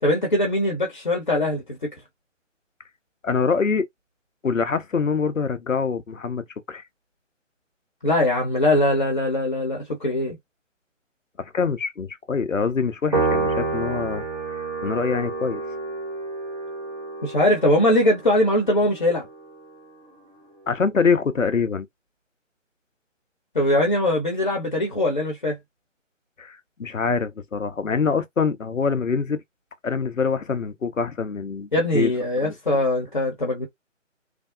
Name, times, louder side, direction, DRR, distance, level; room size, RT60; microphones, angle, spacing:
voice 1, 0.0-1.9 8.0-10.4 17.2-19.3 23.5-25.6 31.7-33.7, left 1 dB, 40° left, 0.8 m, -21 dB
voice 2, 3.2-3.9 4.4-6.4 6.7-6.8 11.4-14.2 14.8-15.6 20.7-21.9 26.4-29.4 29.8-32.1 32.4-32.5, left 5 dB, 80° left, 0.7 m, -24 dB
Piano, 13.1-19.7, right 3 dB, 40° right, 0.9 m, -29 dB
3.3 x 2.0 x 2.5 m
figure-of-eight pair, 150°, 38 cm